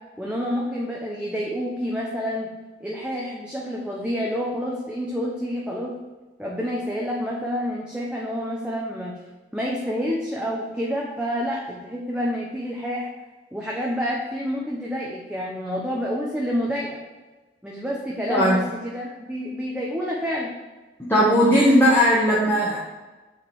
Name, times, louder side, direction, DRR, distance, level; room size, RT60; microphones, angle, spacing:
voice 1, 0.2-2.5 2.8-5.9 6.4-9.1 9.5-13.1 13.5-17.0 17.6-20.5, equal, 5° right, -4 dB, 1.1 m, -28 dB
voice 2, 18.3-18.7 21.1-22.9, equal, 10° left, -7 dB, 1.6 m, -18 dB
7.5 x 5.0 x 7.3 m, 1.2 s
head